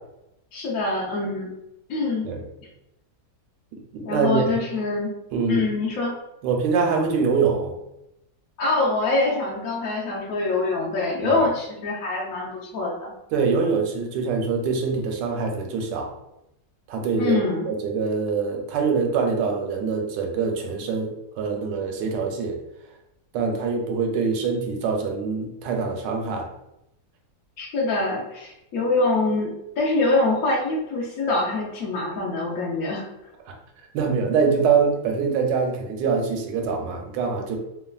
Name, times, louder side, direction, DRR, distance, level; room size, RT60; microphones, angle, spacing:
voice 1, 0.5-1.5 1.9-2.3 4.0-5.1 5.5-6.2 8.6-13.1 17.2-17.7 27.6-33.1, left 2 dB, 65° left, -4 dB, 0.9 m, -24 dB
voice 2, 3.7-4.5 5.3-5.7 6.4-7.7 11.2-11.5 13.3-16.1 16.9-17.4 17.6-22.6 23.3-26.5 33.9-37.6, right 5 dB, 85° right, 2 dB, 1.2 m, -24 dB
3.0 x 2.2 x 2.3 m, 0.87 s
omnidirectional pair, 1.9 m